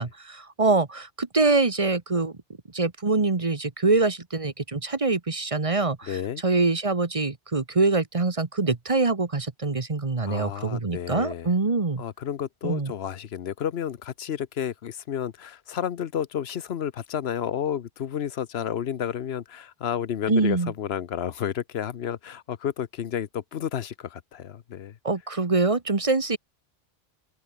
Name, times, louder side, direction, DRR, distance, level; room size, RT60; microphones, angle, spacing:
voice 1, 0.0-2.3 2.7-12.0 12.6-12.9 20.3-20.7 25.0-26.4, right 3 dB, 30° right, 1.3 m, -24 dB
voice 2, 6.1-6.4 10.2-11.5 12.0-25.0, left 9 dB, 70° left, 1.1 m, -31 dB
open air
omnidirectional pair, 1.1 m